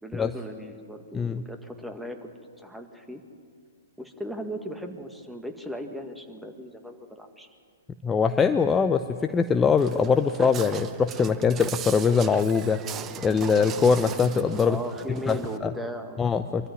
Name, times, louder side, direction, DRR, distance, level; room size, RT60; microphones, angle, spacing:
voice 1, 0.0-2.3 2.6-3.2 4.0-7.5 10.3-10.4 14.7-16.3, equal, 5° right, 5 dB, 1.8 m, -37 dB
voice 2, 8.0-12.8 13.2-14.8 15.3-15.7 16.2-16.7, left 5 dB, 15° left, 8 dB, 0.7 m, -22 dB
Walk footsteps, 9.8-15.6, right 9 dB, 25° right, 0.8 m, -39 dB
24.0 x 13.5 x 9.6 m, 2.2 s
hypercardioid pair, 120°, 0 cm